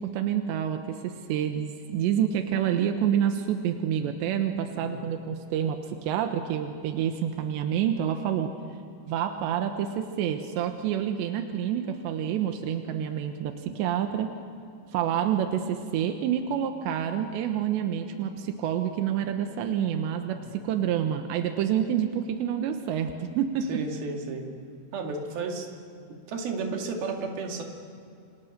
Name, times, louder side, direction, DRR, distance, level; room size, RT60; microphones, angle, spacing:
voice 1, 0.0-8.5 9.1-14.3 14.9-23.8, right 9 dB, 90° right, 6 dB, 3.4 m, -28 dB
voice 2, 4.7-5.0 20.3-20.5 23.7-24.4 24.9-25.7 26.3-27.6, right 4 dB, 65° right, 2 dB, 4.2 m, -33 dB
29.0 x 25.0 x 6.7 m, 2.6 s
omnidirectional pair, 4.9 m